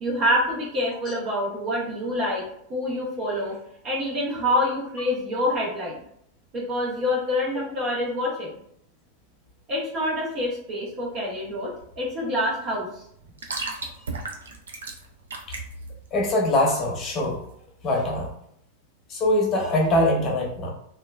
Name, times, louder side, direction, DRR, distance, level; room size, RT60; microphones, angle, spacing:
voice 1, 0.0-2.4 2.7-3.5 3.8-6.0 6.5-8.5 9.7-12.9, left 1 dB, 40° right, -4 dB, 0.8 m, -26 dB
sound 1, 10.9-17.6, right 3 dB, 70° right, 0.4 m, -37 dB
voice 2, 16.1-17.4 17.8-18.3 19.1-20.7, left 1 dB, 30° left, -1 dB, 0.8 m, -23 dB
2.9 x 2.3 x 2.2 m, 0.70 s
figure-of-eight pair, 90°, 0 cm